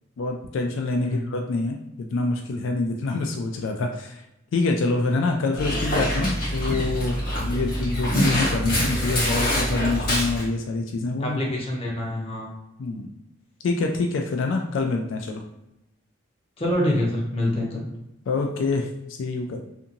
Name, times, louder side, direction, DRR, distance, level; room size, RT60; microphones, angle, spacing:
voice 1, 0.2-4.2 4.5-11.4 12.8-13.1 13.6-15.4 18.3-19.6, left 3 dB, 80° left, 3 dB, 0.3 m, -26 dB
Dog, 5.6-10.5, equal, 45° left, 1.0 m, -25 dB
voice 2, 11.2-12.5 16.6-17.9, left 1 dB, 30° left, -3 dB, 0.7 m, -26 dB
2.8 x 2.5 x 2.6 m, 0.88 s
head